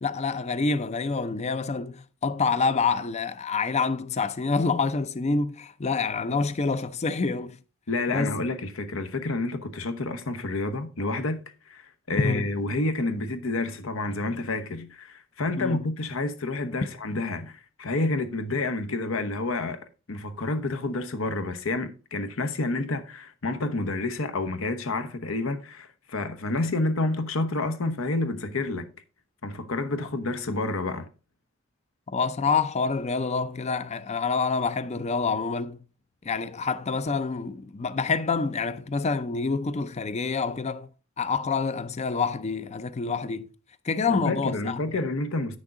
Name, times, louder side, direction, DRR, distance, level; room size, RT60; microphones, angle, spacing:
voice 1, 0.0-7.6 8.1-8.4 12.1-12.5 15.5-15.8 32.1-35.8 36.2-40.9 41.2-43.5 43.8-44.8, left 4 dB, 35° left, 0.5 m, -27 dB
voice 2, 7.9-11.4 11.7-28.9 29.4-31.1 44.1-45.6, left 2 dB, 75° left, 1.0 m, -29 dB
8.9 x 6.4 x 3.7 m
head